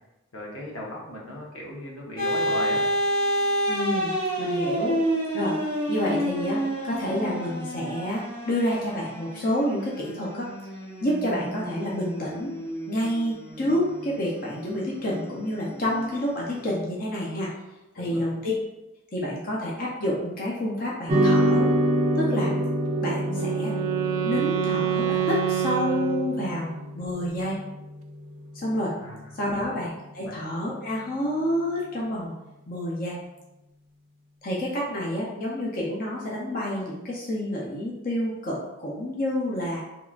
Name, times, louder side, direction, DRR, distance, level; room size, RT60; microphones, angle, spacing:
voice 1, 0.3-2.9 13.6-13.8 18.0-18.3 29.0-29.7 30.2-30.3, left 1 dB, 75° left, -3 dB, 0.8 m, -37 dB
sound 1, 2.2-16.7, equal, 25° left, 1.5 m, -30 dB
voice 2, 3.7-4.1 4.4-5.0 5.3-5.6 5.9-6.6 6.8-10.5 11.0-12.5 12.9-17.5 17.9-18.5 19.1-21.7 22.2-22.5 23.0-23.7 24.2-27.6 28.5-28.9 29.3-32.3 32.7-33.2 34.4-39.8, left 1 dB, 40° left, -5 dB, 0.6 m, -28 dB
sound 2, 21.1-29.6, right 1 dB, 30° right, 0.6 m, -27 dB
Wind instrument woodwind instrument, 22.9-26.8, right 11 dB, 85° right, 0.4 m, -27 dB
3.7 x 2.9 x 2.4 m, 0.97 s
head